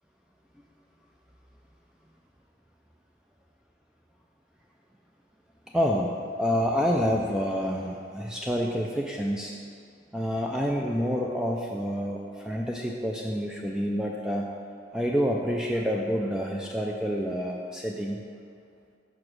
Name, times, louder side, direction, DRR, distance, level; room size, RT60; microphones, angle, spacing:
voice 1, 5.7-9.5 10.1-14.5 14.9-18.2, equal, 5° right, -1 dB, 0.3 m, -28 dB
5.1 x 4.9 x 6.0 m, 2.3 s
head